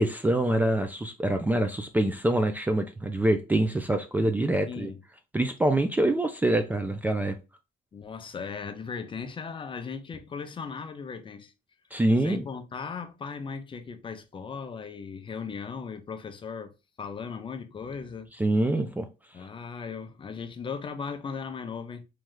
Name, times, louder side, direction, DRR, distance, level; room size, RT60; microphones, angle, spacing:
voice 1, 0.0-4.9 5.3-7.4 11.9-12.4 18.4-19.1, right 1 dB, 10° right, 0.4 m, -25 dB
voice 2, 4.6-5.0 7.9-11.5 12.2-16.7 17.0-18.3 19.3-22.1, left 5 dB, 30° left, 0.6 m, -37 dB
3.1 x 3.0 x 3.7 m
cardioid pair, 110°, 17 cm